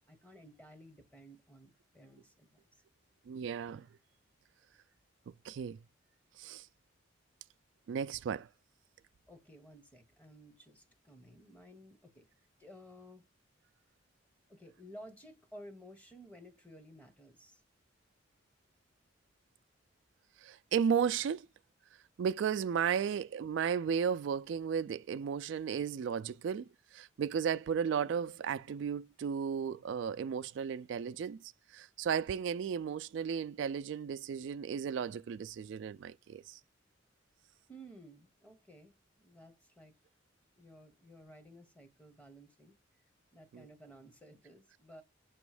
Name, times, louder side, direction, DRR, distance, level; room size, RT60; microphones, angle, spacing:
voice 1, 0.1-2.8 9.3-12.3 12.6-13.2 14.5-17.6 37.7-40.0 40.5-42.7 43.3-45.0, equal, 10° left, 0.9 m, -55 dB
voice 2, 3.3-3.9 5.4-5.8 6.4-6.7 7.9-8.5 20.4-21.5 22.2-36.6 43.5-43.7, right 7 dB, 70° right, 0.3 m, -34 dB
7.0 x 3.0 x 4.8 m
head